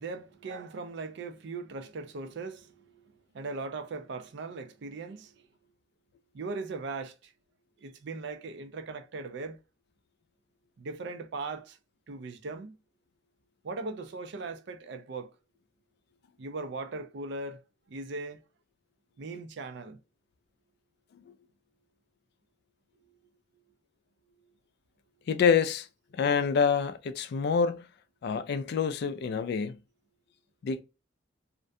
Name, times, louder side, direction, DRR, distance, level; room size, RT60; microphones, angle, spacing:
voice 1, 0.0-5.5 6.3-7.3 7.8-9.6 10.8-11.8 12.1-12.8 13.6-15.3 16.4-17.6 17.9-18.4 19.2-20.0 23.1-23.2, right 3 dB, 65° right, 0.4 m, -39 dB
voice 2, 25.3-25.9 26.1-27.9 28.2-29.8 30.6-30.8, left 6 dB, 60° left, 0.3 m, -26 dB
2.5 x 2.2 x 2.5 m
head